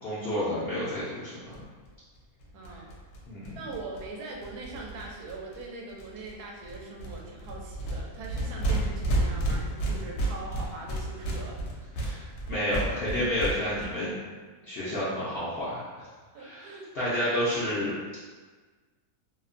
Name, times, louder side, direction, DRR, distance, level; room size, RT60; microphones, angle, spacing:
voice 1, 0.0-1.6 3.3-3.6 12.0-14.2 14.6-16.1 16.4-18.0, equal, 65° left, -10 dB, 0.6 m, -30 dB
sound 1, 1.5-1.6 1.8-1.9 2.1-2.2 2.4-5.6 6.0-6.3 6.6-13.9, right 1 dB, 85° left, 1.1 m, -32 dB
voice 2, 2.5-2.9 3.6-11.9 14.9-15.0 16.3-16.9, right 3 dB, 85° right, -1 dB, 1.1 m, -41 dB
2.8 x 2.0 x 2.5 m, 1.4 s
omnidirectional pair, 1.6 m